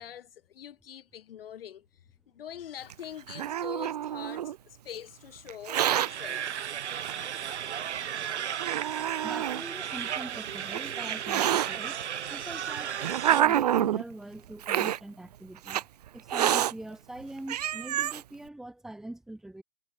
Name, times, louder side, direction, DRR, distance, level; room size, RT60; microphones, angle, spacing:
voice 1, 0.0-1.9 2.3-6.7, left 10 dB, 45° left, 6.1 m, -44 dB
Hiss, 2.9-4.5 5.5-6.1 7.0-7.1 8.0-8.1 8.6-9.6 10.5-11.7 12.5-14.0 14.6-15.0 15.7-15.8 16.3-16.7 17.2-17.3 17.5-18.2, right 11 dB, 30° right, 1.2 m, -27 dB
sound 1, 5.7-13.4, right 9 dB, 60° right, 1.4 m, -35 dB
voice 2, 9.2-12.0 12.3-15.8 16.1-19.6, right 1 dB, ahead, 1.6 m, -43 dB
hypercardioid pair, 170°, 39 cm